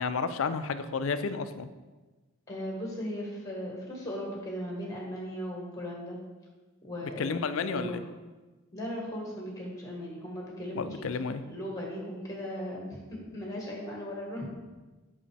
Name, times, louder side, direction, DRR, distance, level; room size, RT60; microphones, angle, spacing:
voice 1, 0.0-1.7 7.0-8.0 10.7-11.4, left 5 dB, 60° left, 11 dB, 0.4 m, -31 dB
voice 2, 2.5-6.2 6.8-8.0 8.7-10.8 11.4-14.5, equal, 15° left, -2 dB, 1.4 m, -37 dB
7.5 x 5.5 x 3.3 m, 1.2 s
head